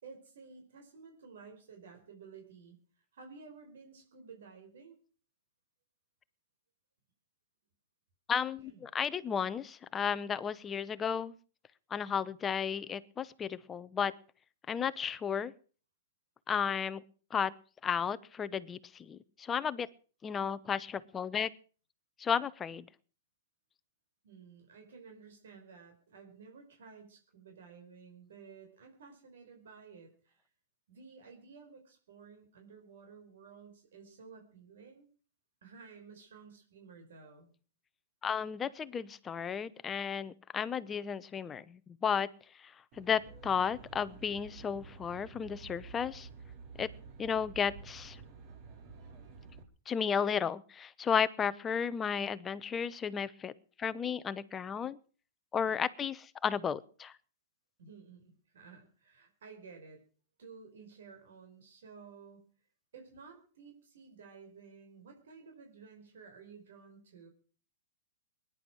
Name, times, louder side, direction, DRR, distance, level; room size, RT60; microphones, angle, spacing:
voice 1, 0.0-2.8 3.1-5.0 8.6-8.8 24.2-30.5 30.9-35.1 35.6-37.5 57.8-60.0 60.4-62.5 62.9-67.3, right 5 dB, 75° right, 3 dB, 5.2 m, -53 dB
voice 2, 8.3-11.3 11.9-14.1 14.7-15.5 16.5-17.0 17.3-17.5 17.8-19.9 20.2-21.5 22.2-22.9 38.2-42.3 42.6-46.3 46.8-46.9 47.2-48.2 49.9-53.5 53.8-55.0 55.5-57.1, left 7 dB, 15° left, 15 dB, 0.8 m, -33 dB
Aircraft, 42.9-49.6, right 5 dB, 35° right, 3.2 m, -51 dB
20.5 x 11.0 x 6.4 m, 0.41 s
hypercardioid pair, 150°, 0 cm